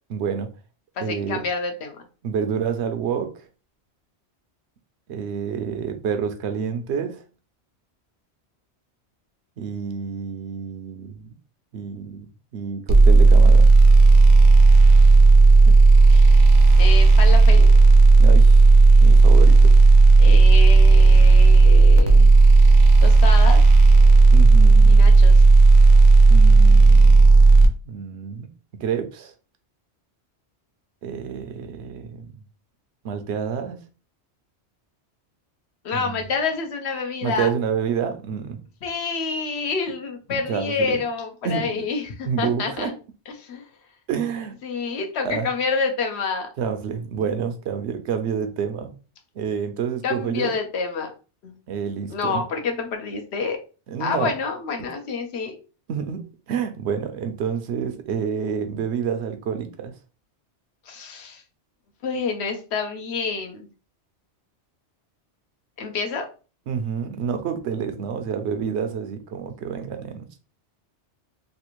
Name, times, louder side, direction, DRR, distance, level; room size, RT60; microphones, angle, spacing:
voice 1, 0.1-0.5 1.0-1.4 2.2-3.3 5.1-7.2 9.6-11.3 11.7-12.3 12.5-13.7 18.2-18.6 19.0-19.7 24.3-25.0 26.3-28.5 28.8-29.3 31.0-32.3 33.0-33.8 35.9-36.2 37.2-38.6 40.3-41.0 41.4-41.8 42.3-42.9 44.1-44.5 45.2-45.5 46.6-48.9 49.4-50.5 51.7-52.4 53.9-54.3 55.9-59.9 66.7-70.2, right 7 dB, 75° right, 0.9 m, -28 dB
voice 2, 1.0-2.0 15.7-15.8 16.1-16.4 16.8-17.7 20.2-22.3 23.0-23.6 24.9-25.4 35.8-37.5 38.8-42.9 43.3-43.7 44.6-46.5 50.0-51.1 51.4-51.5 52.1-53.6 54.0-55.6 60.9-61.4 62.0-63.7 65.8-66.3, left 4 dB, 70° left, 1.0 m, -28 dB
sound 1, 12.9-27.7, right 3 dB, 50° right, 0.5 m, -11 dB
3.2 x 2.5 x 3.0 m
omnidirectional pair, 1.2 m